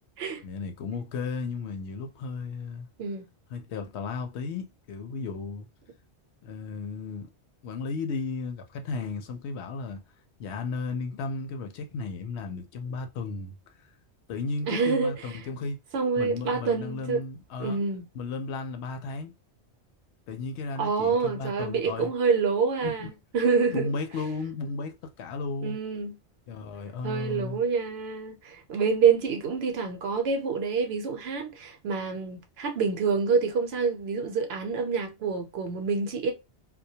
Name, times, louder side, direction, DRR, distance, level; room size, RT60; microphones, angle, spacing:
voice 1, 0.4-2.9 3.5-5.7 6.4-7.3 7.6-10.0 10.4-13.5 14.3-15.8 16.2-17.8 18.1-19.3 20.3-22.1 22.8-23.1 23.7-25.8 26.5-27.6, left 4 dB, 75° left, 0.8 m, -34 dB
voice 2, 14.7-15.4 15.9-17.2 17.6-18.1 20.8-23.9 25.6-26.2 27.0-36.3, right 5 dB, 70° right, 0.8 m, -27 dB
2.2 x 2.1 x 2.7 m
omnidirectional pair, 1.1 m